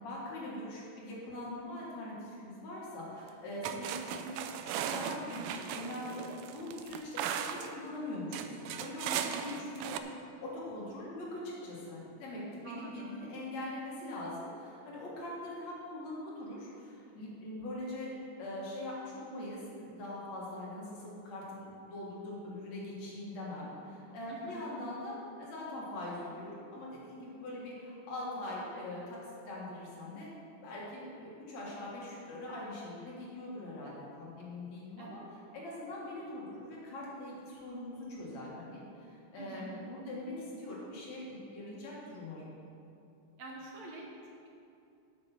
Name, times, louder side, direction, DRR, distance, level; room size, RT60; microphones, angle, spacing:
voice 1, 0.0-18.1 18.4-30.3 30.6-42.6, left 1 dB, 60° left, -5 dB, 2.9 m, -42 dB
sound 1, 3.2-3.3 3.6-7.8 8.3-10.0, right 9 dB, 85° right, 2.1 m, -37 dB
voice 2, 12.6-13.1 24.3-24.6 35.0-35.2 39.4-39.8 43.4-44.5, right 3 dB, 65° right, -2 dB, 2.0 m, -46 dB
8.3 x 7.1 x 6.0 m, 2.6 s
omnidirectional pair, 3.6 m